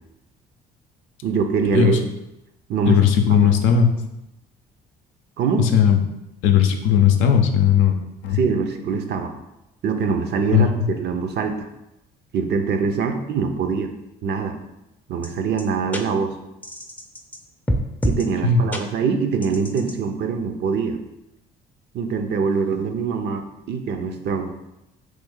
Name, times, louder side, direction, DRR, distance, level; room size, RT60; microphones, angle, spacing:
voice 1, 1.2-2.0 2.7-3.0 3.3-3.6 5.4-5.7 8.3-9.3 9.8-11.7 12.3-13.9 14.2-14.6 15.1-16.3 18.0-21.0 21.9-24.5, right 5 dB, 55° right, 6 dB, 0.5 m, -23 dB
voice 2, 2.9-3.9 5.6-6.0 6.4-8.0 8.2-8.4 10.5-10.7 18.4-18.7, left 8 dB, 75° left, 4 dB, 0.5 m, -16 dB
sound 1, 15.2-15.3 15.6-15.7 15.9-16.0 16.6-17.4 17.7-18.3 18.7-18.8 19.4-19.9, equal, 10° left, 0.5 m, -25 dB
3.2 x 2.6 x 3.7 m, 0.91 s
supercardioid pair, 60°, 20 cm